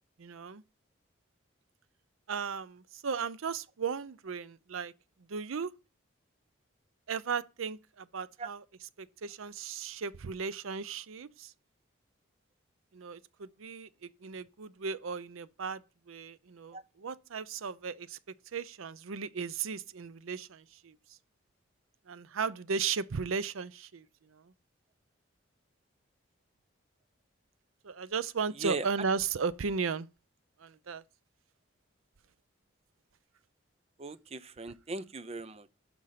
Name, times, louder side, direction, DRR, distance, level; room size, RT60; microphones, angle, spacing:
voice 1, 0.2-0.6 2.3-4.9 5.3-5.7 7.1-8.6 9.0-11.5 12.9-18.2 18.5-21.0 22.1-24.5 27.8-30.1 30.6-31.0, right 5 dB, 80° right, 0.6 m, -36 dB
voice 2, 34.0-35.7, right 3 dB, 30° right, 0.5 m, -38 dB
11.5 x 5.3 x 5.7 m
head